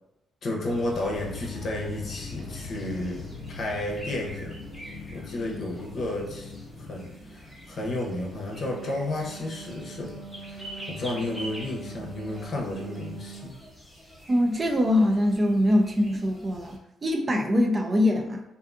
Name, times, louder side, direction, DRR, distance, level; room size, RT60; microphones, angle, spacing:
voice 1, 0.4-4.6 5.1-6.5 6.9-13.5, left 1 dB, 55° left, -1 dB, 0.7 m, -32 dB
sound 1, 0.7-16.8, left 1 dB, 5° left, 0.8 m, -44 dB
sound 2, 1.1-7.0, left 3 dB, 75° left, 0.3 m, -43 dB
Wind instrument woodwind instrument, 8.3-13.6, right 5 dB, 60° right, 0.8 m, -43 dB
voice 2, 14.3-18.4, left 1 dB, 30° right, 3 dB, 0.4 m, -23 dB
2.5 x 2.3 x 2.5 m, 0.95 s
cardioid pair, 90°, 0 cm